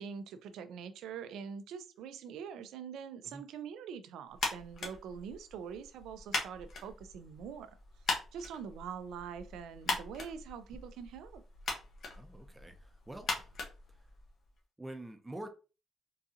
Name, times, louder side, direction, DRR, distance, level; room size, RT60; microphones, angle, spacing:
voice 1, 0.0-7.7 8.3-11.4, right 7 dB, 85° right, 0.4 m, -44 dB
sound 1, 4.3-14.5, left 3 dB, 55° left, 1.1 m, -40 dB
voice 2, 12.2-13.5 14.8-15.5, right 1 dB, 10° right, 0.7 m, -46 dB
3.8 x 2.4 x 2.7 m
cardioid pair, 90°, 0 cm